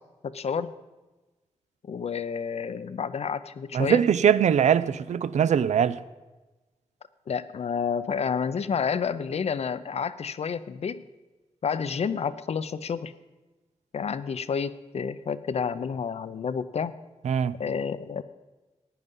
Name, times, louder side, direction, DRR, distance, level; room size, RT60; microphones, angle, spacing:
voice 1, 0.2-0.7 1.8-4.0 7.3-11.0 11.6-13.1 13.9-16.9 17.6-18.2, left 6 dB, 65° left, 0.6 m, -30 dB
voice 2, 3.7-6.0 17.2-17.5, right 8 dB, 90° right, 0.5 m, -22 dB
15.0 x 9.6 x 5.4 m
wide cardioid pair, 105°, 12 cm